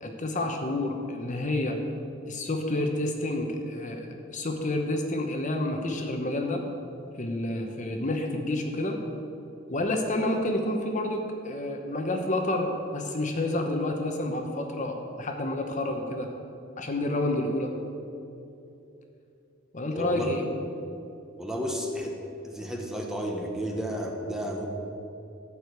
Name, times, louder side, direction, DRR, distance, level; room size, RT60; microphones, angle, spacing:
voice 1, 0.0-1.8 2.3-6.6 7.2-9.0 9.7-16.3 16.8-17.7 19.7-20.4, left 1 dB, 40° left, 3 dB, 0.9 m, -29 dB
voice 2, 19.9-20.3 21.4-22.2 22.4-24.7, equal, 5° right, 0 dB, 1.2 m, -32 dB
13.5 x 4.9 x 8.2 m, 2.8 s
head